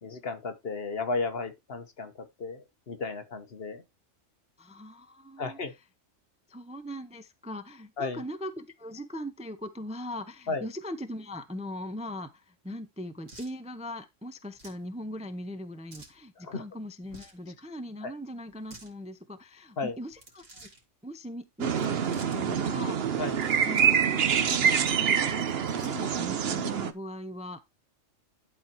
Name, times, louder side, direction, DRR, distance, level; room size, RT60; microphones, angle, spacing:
voice 1, 0.0-3.8 5.4-5.7 8.0-8.2 10.5-10.7 16.4-16.6 18.0-18.1 19.8-19.9 23.2-23.4, left 3 dB, 50° left, 1.4 m, -34 dB
voice 2, 4.6-5.6 6.5-20.7 21.0-23.0 23.6-25.5 25.7-27.6, left 1 dB, 10° right, 0.4 m, -40 dB
sound 1, 13.3-13.6 14.5-14.8 15.9-16.2 17.0-17.4 18.5-18.9 20.1-20.8 21.7-22.4 23.2-24.0 24.3-24.4 25.2-26.2, right 2 dB, 80° right, 3.1 m, -51 dB
sound 2, 21.6-26.9, right 7 dB, 55° right, 1.0 m, -26 dB
11.5 x 4.2 x 4.5 m
omnidirectional pair, 1.3 m